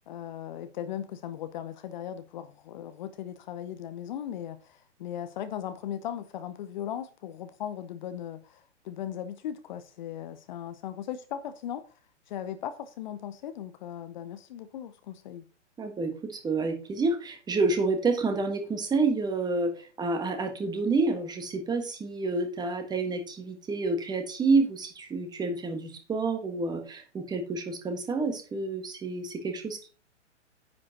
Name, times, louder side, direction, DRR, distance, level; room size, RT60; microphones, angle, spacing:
voice 1, 0.1-11.8 12.3-15.4, left 10 dB, 40° left, 0.8 m, -38 dB
voice 2, 15.8-29.9, right 3 dB, 10° right, 1.5 m, -29 dB
9.8 x 8.5 x 2.9 m
figure-of-eight pair, 120°, 36 cm